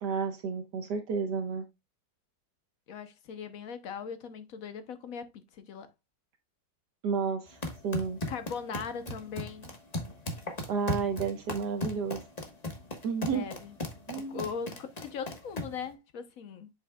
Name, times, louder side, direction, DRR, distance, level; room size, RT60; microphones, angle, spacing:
voice 1, 0.0-1.6 7.0-8.2 10.7-12.2 13.0-13.5 14.1-14.5, right 5 dB, 70° right, 1.5 m, -31 dB
voice 2, 2.9-5.9 8.3-9.7 13.2-13.7 14.1-16.7, left 6 dB, 55° left, 1.1 m, -40 dB
sound 1, 7.5-15.9, left 1 dB, 25° left, 1.2 m, -38 dB
7.8 x 6.3 x 2.3 m
omnidirectional pair, 1.9 m